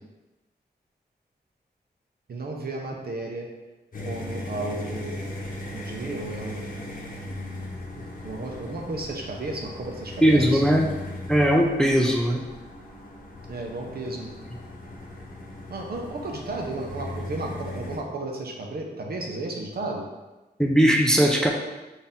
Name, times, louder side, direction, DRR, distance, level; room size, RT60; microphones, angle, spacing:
voice 1, 2.3-3.5 4.0-5.4 5.7-6.7 8.2-10.6 13.5-14.3 15.7-20.1, right 2 dB, 60° right, 0 dB, 0.7 m, -33 dB
sound 1, 3.9-18.0, left 1 dB, 50° left, 0.9 m, -38 dB
voice 2, 10.2-10.9 11.3-12.4 20.6-21.5, equal, 5° left, 0 dB, 0.4 m, -19 dB
4.0 x 2.7 x 3.5 m, 1.1 s
wide cardioid pair, 90°, 18 cm